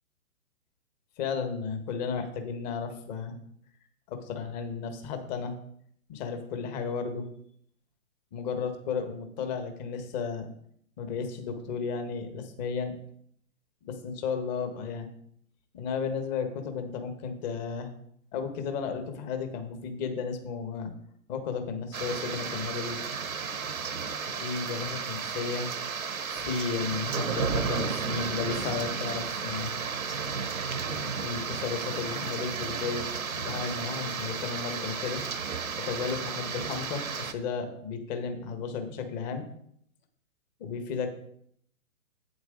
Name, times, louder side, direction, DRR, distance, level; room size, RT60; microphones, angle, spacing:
voice 1, 1.2-3.4 4.1-5.5 6.1-7.3 8.3-10.5 11.0-12.9 13.8-15.1 15.7-17.9 18.3-20.9 21.3-23.0 24.4-25.7 26.4-29.7 30.9-33.1 33.3-35.2 35.8-39.4 40.6-41.1, left 5 dB, 30° left, 7 dB, 1.5 m, -33 dB
sound 1, 21.9-37.3, right 6 dB, 90° right, 1.1 m, -33 dB
8.8 x 7.9 x 3.9 m, 0.68 s
hypercardioid pair, 135°, 41 cm